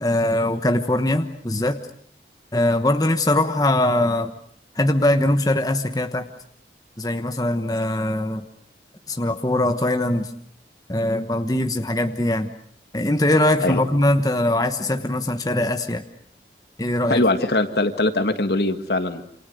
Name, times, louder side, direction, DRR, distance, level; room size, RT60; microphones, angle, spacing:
voice 1, 0.0-1.8 2.5-4.3 4.7-6.3 7.0-8.5 9.1-10.3 10.9-12.5 12.9-16.0 16.8-17.2, left 1 dB, 20° left, 7 dB, 1.2 m, -21 dB
voice 2, 17.1-19.2, left 2 dB, 65° left, 8 dB, 1.8 m, -21 dB
28.5 x 27.0 x 6.6 m, 0.64 s
head